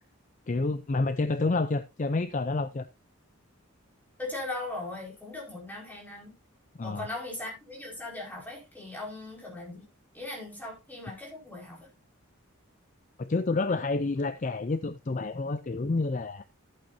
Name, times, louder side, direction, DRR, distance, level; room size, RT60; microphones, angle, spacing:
voice 1, 0.5-2.9 6.8-7.1 13.2-16.4, left 3 dB, 35° left, 0.4 m, -29 dB
voice 2, 4.2-6.3 6.8-9.8 10.1-11.9, left 2 dB, 10° left, 5.0 m, -39 dB
14.0 x 8.6 x 2.7 m
head